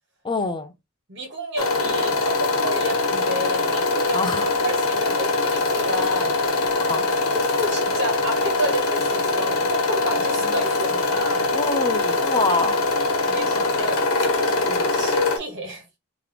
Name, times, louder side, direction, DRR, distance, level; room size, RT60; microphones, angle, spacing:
voice 1, 0.2-0.7 4.1-4.5 6.8-7.0 10.2-10.3 11.5-12.8 13.4-13.7, left 3 dB, 20° left, 0.4 m, -26 dB
voice 2, 1.1-6.3 7.6-11.5 13.2-14.0 14.3-15.8, equal, 55° right, 1.5 m, -30 dB
sound 1, 1.6-15.4, left 3 dB, 80° left, 1.0 m, -23 dB
3.3 x 2.9 x 3.8 m
head